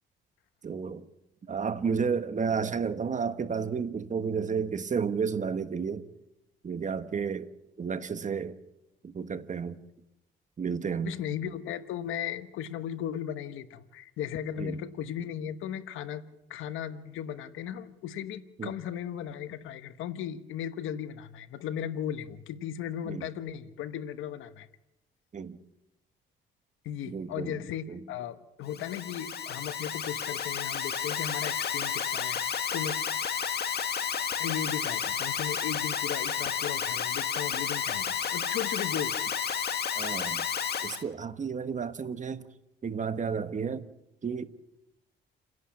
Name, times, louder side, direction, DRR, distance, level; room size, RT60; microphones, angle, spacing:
voice 1, 0.6-1.0 1.5-6.0 6.6-7.5 7.8-8.6 9.0-9.8 10.6-11.1 14.6-14.8 18.6-18.7 23.0-23.2 25.3-25.6 27.1-27.6 27.9-28.0 39.9-40.4 40.8-42.4 42.8-43.8 44.2-44.5, right 6 dB, 40° right, 1.4 m, -32 dB
voice 2, 11.0-16.2 16.5-24.7 26.8-33.0 34.4-39.2, left 9 dB, 85° left, 1.2 m, -36 dB
Alarm, 28.7-41.0, left 7 dB, 55° left, 1.8 m, -31 dB
29.5 x 11.0 x 8.6 m
cardioid pair, 90°, 20 cm